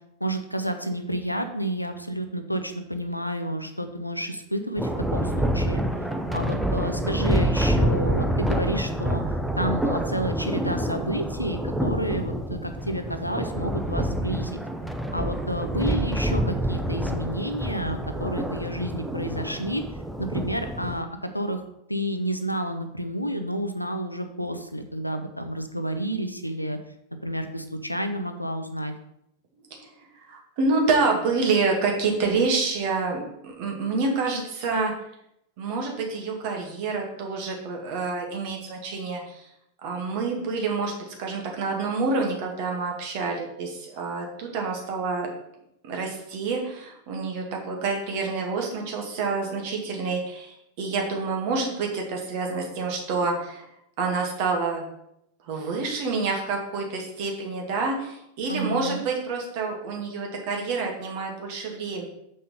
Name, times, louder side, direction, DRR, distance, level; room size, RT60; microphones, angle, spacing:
voice 1, 0.2-5.8 6.3-9.2 9.6-14.6 15.1-19.8 20.2-21.6 21.9-26.8 27.2-28.9 58.5-59.0, equal, 90° left, 7 dB, 0.8 m, -30 dB
Thunder, 4.8-21.0, right 1 dB, ahead, 0.8 m, -27 dB
voice 2, 30.2-34.9 35.6-39.5 39.8-40.9 41.2-45.3 45.8-53.7 54.0-54.8 55.5-62.0, right 4 dB, 45° right, 1 dB, 2.1 m, -27 dB
6.8 x 5.5 x 5.5 m, 0.78 s
figure-of-eight pair, 90°, 0 cm